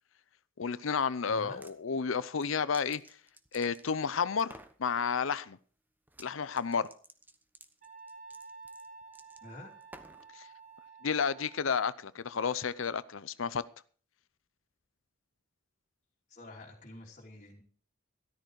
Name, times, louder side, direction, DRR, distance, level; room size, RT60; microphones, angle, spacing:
voice 1, 0.6-3.0 3.5-5.6 6.2-6.9 10.3-10.5 11.0-13.6, left 6 dB, 75° left, 16 dB, 0.6 m, -31 dB
voice 2, 1.3-1.7 9.4-9.7 16.3-17.6, left 2 dB, 40° left, -2 dB, 2.9 m, -48 dB
sound 1, 1.4-1.8 2.2-4.1 4.4-4.8 6.1-6.3 6.5-10.3, right 2 dB, 10° right, 1.1 m, -54 dB
Wind instrument woodwind instrument, 7.8-11.9, right 4 dB, 40° right, 2.4 m, -51 dB
13.5 x 13.0 x 4.7 m, 0.44 s
head